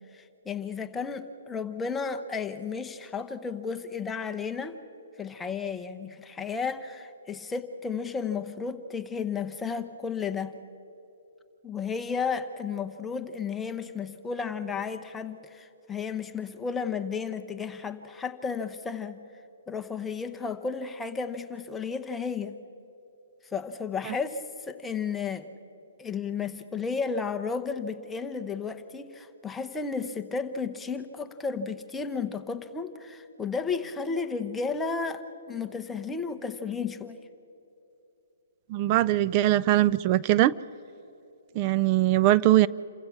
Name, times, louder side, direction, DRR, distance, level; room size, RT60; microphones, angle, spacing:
voice 1, 0.1-4.8 5.2-10.5 11.6-19.2 19.7-22.6 23.5-25.5 26.0-37.2, left 5 dB, 10° left, 7 dB, 0.9 m, -33 dB
voice 2, 38.7-40.5 41.6-42.7, right 15 dB, 35° right, 18 dB, 0.3 m, -21 dB
28.5 x 15.5 x 6.0 m, 2.9 s
hypercardioid pair, 145°, 0 cm